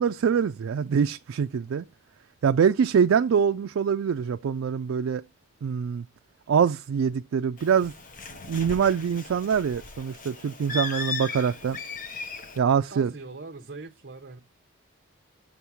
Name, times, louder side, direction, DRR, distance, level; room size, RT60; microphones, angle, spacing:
voice 1, 0.0-1.9 2.4-5.2 5.6-6.0 6.5-7.9 8.5-11.8 12.6-13.1, right 7 dB, 75° right, 0.3 m, -24 dB
Bird, 7.6-12.6, left 4 dB, 40° left, 0.8 m, -37 dB
voice 2, 12.9-14.4, right 3 dB, 50° right, 0.8 m, -41 dB
7.3 x 3.5 x 6.0 m
head